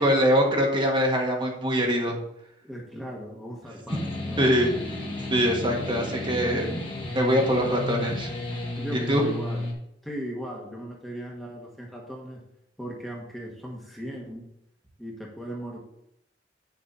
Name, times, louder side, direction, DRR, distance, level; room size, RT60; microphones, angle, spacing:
voice 1, 0.0-2.2 4.4-4.7 5.3-6.6 7.1-8.3 9.1-9.2, equal, 30° right, 0 dB, 1.6 m, -23 dB
voice 2, 2.6-4.5 6.5-6.8 8.8-9.6 10.0-12.4 12.8-14.5 15.0-15.8, equal, ahead, -3 dB, 1.6 m, -37 dB
sound 1, 3.9-9.7, left 2 dB, 30° left, 1.9 m, -33 dB
8.5 x 7.0 x 4.1 m, 0.77 s
head